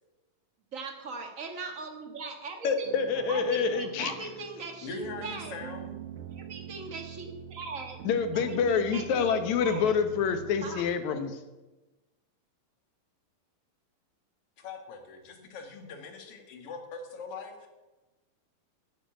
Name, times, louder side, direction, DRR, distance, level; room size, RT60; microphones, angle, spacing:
voice 1, 0.7-2.9 3.3-5.5 6.3-8.0 8.3-10.0 10.6-10.8, right 3 dB, 60° right, 4 dB, 0.8 m, -40 dB
voice 2, 2.6-4.1 8.1-11.4, left 6 dB, 65° left, 8 dB, 2.3 m, -27 dB
sound 1, 2.8-10.8, right 11 dB, 85° right, 2.9 m, -44 dB
voice 3, 4.8-6.1 14.6-17.7, left 4 dB, 50° left, 3 dB, 2.5 m, -42 dB
10.0 x 9.7 x 9.0 m, 1.1 s
omnidirectional pair, 4.0 m